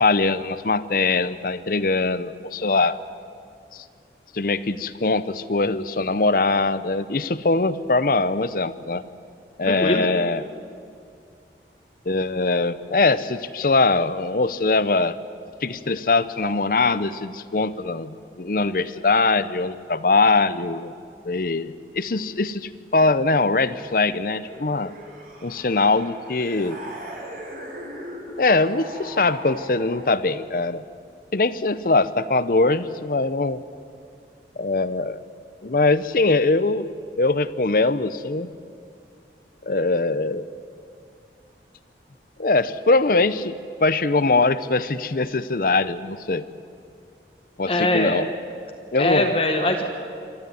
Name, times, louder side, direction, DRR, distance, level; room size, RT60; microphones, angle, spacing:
voice 1, 0.0-3.0 3.7-3.8 4.3-9.0 9.6-10.4 12.1-15.2 15.6-20.9 21.3-24.9 25.4-26.8 28.4-30.9 31.3-33.6 34.6-35.2 35.6-38.5 39.6-40.4 42.4-46.4 47.6-48.3 48.9-49.3, left 3 dB, 50° left, 15 dB, 0.7 m, -22 dB
voice 2, 9.6-10.0 47.7-48.2 49.0-49.8, left 1 dB, 30° left, 3 dB, 1.5 m, -22 dB
sound 1, 24.4-30.3, right 1 dB, 50° right, 4.0 m, -39 dB
26.0 x 13.0 x 9.3 m, 2.4 s
head